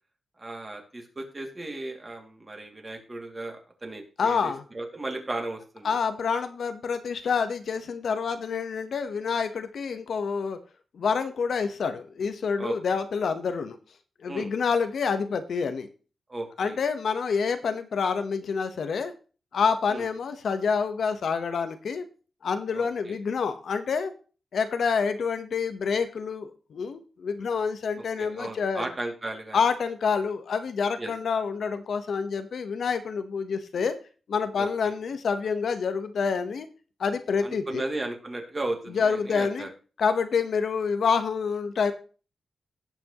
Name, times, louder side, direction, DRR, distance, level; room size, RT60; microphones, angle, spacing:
voice 1, 0.4-6.0 12.6-12.7 14.3-14.5 16.3-16.8 19.9-20.1 22.7-23.2 28.2-29.6 31.0-31.1 34.6-35.0 37.4-39.7, right 2 dB, 25° right, 2 dB, 2.4 m, -35 dB
voice 2, 4.2-4.6 5.8-10.6 10.9-13.8 14.2-15.9 16.6-19.1 19.5-22.0 22.4-24.1 24.5-28.9 29.5-34.0 34.3-36.7 37.0-37.8 38.9-39.7 40.0-41.9, left 5 dB, 65° left, 9 dB, 1.1 m, -27 dB
18.0 x 6.1 x 3.0 m, 0.36 s
wide cardioid pair, 140°, 0 cm